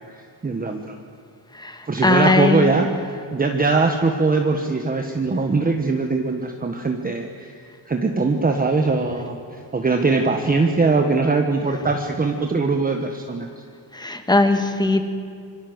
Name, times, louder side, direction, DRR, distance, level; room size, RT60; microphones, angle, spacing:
voice 1, 0.1-1.0 1.9-2.9 3.3-13.5, right 3 dB, 20° right, 4 dB, 1.4 m, -21 dB
voice 2, 1.5-2.7 13.9-15.0, left 2 dB, 10° left, 7 dB, 2.0 m, -19 dB
26.5 x 24.0 x 8.0 m, 2.4 s
cardioid pair, 155°, 42 cm